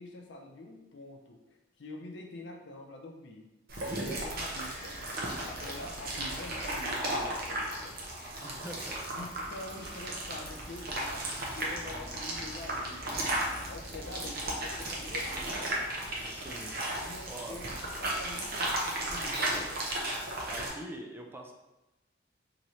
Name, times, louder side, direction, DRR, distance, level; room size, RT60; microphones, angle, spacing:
voice 1, 0.0-1.5 1.8-3.5 4.0-5.0 5.4-8.0 9.1-13.1 13.7-15.8 17.0-19.8, left 2 dB, 70° left, 2 dB, 0.6 m, -46 dB
sound 1, 3.7-20.7, right 1 dB, 55° right, 0.8 m, -35 dB
sound 2, 4.9-18.7, equal, 15° left, 1.1 m, -50 dB
voice 2, 8.4-9.1 16.2-17.0 17.3-17.6 20.5-21.5, right 1 dB, 10° right, 2 dB, 0.4 m, -44 dB
4.1 x 2.9 x 3.1 m, 1.0 s
head